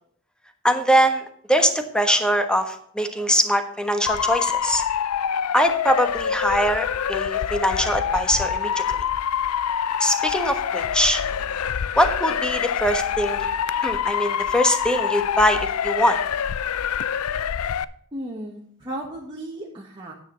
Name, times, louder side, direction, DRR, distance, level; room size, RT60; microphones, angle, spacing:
voice 1, 0.6-4.8 5.5-9.0 10.0-11.2 12.0-13.5 13.8-16.2, equal, 5° left, 7 dB, 1.2 m, -22 dB
Motor vehicle (road) / Siren, 4.1-17.8, left 8 dB, 80° left, 0.5 m, -26 dB
voice 2, 18.1-20.1, right 1 dB, 20° right, -3 dB, 1.5 m, -35 dB
10.0 x 9.1 x 3.9 m, 0.62 s
head